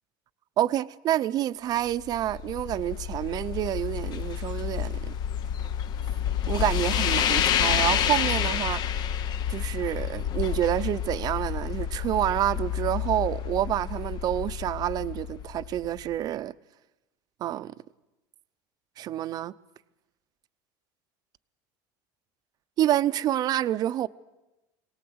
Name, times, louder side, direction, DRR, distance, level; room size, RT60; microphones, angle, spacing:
voice 1, 0.6-5.1 6.5-8.8 9.5-16.5 17.4-17.7 19.0-19.5 22.8-24.1, right 12 dB, 40° right, 0.6 m, -28 dB
sound 1, 1.9-16.0, left 9 dB, 45° left, 0.8 m, -29 dB
22.0 x 18.5 x 7.9 m
supercardioid pair, 125°, 10 cm